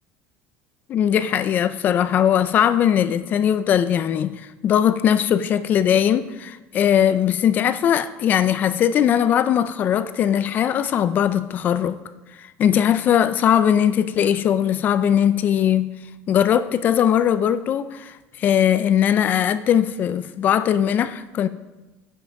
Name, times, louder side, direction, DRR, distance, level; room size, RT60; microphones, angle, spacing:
voice 1, 0.9-4.4 4.6-12.0 12.6-15.9 16.3-21.5, left 9 dB, 30° left, 0.4 m, -20 dB
9.9 x 5.8 x 5.2 m
cardioid pair, 170°, 6 cm